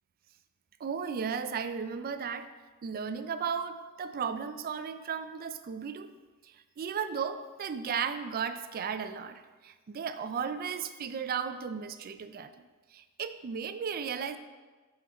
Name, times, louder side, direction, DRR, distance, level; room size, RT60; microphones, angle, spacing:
voice 1, 0.8-2.5 2.8-6.1 6.4-12.5 12.9-14.4, right 6 dB, 40° right, 10 dB, 0.4 m, -35 dB
8.5 x 3.8 x 4.1 m, 1.3 s
head